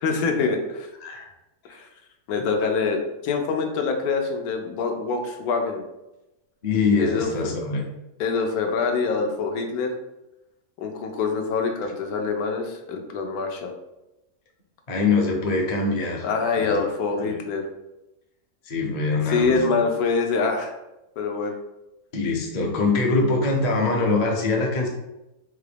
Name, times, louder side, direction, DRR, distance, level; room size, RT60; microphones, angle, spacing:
voice 1, 0.0-0.9 1.7-1.8 2.3-5.8 7.0-7.5 8.2-9.9 10.8-13.7 16.2-17.6 19.3-20.7 21.2-21.5, left 4 dB, 85° left, 4 dB, 1.1 m, -25 dB
voice 2, 6.6-7.8 14.9-16.2 16.6-16.8 17.2-17.4 18.6-19.8 22.1-24.9, left 3 dB, 45° left, 0 dB, 0.5 m, -23 dB
3.8 x 2.4 x 3.3 m, 0.95 s
omnidirectional pair, 1.6 m